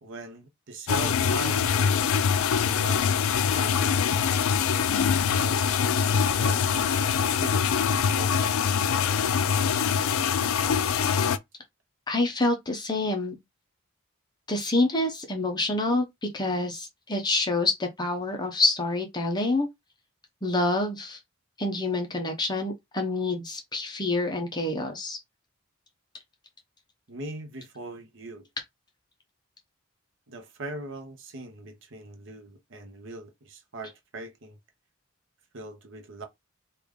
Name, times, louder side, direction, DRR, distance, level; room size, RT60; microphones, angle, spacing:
voice 1, 0.0-4.0 5.1-7.1 7.4-7.8 8.1-8.3 8.6-9.6 27.1-28.5 30.3-34.6 35.5-36.2, right 2 dB, 60° right, 0.8 m, -41 dB
sound 1, 0.9-11.4, left 7 dB, 85° left, 0.4 m, -24 dB
voice 2, 12.1-13.3 14.5-16.0 16.3-19.7 20.4-21.2 21.6-25.2, left 2 dB, 20° left, 0.7 m, -27 dB
3.2 x 2.5 x 3.6 m
head